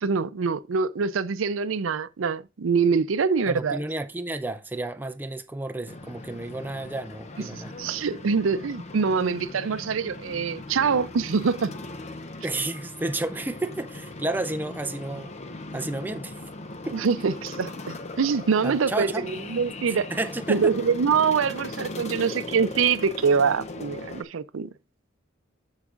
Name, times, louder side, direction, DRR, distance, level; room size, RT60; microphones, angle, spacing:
voice 1, 0.0-3.8 7.8-11.7 16.9-20.1 20.5-24.7, right 5 dB, 90° right, 0.5 m, -24 dB
voice 2, 3.5-7.7 12.4-15.3 15.7-16.4 16.9-17.0 18.6-19.3 19.9-20.7, right 2 dB, 10° right, 0.4 m, -31 dB
sound 1, 5.9-24.2, left 2 dB, 35° left, 0.6 m, -39 dB
13.0 x 4.8 x 2.5 m
head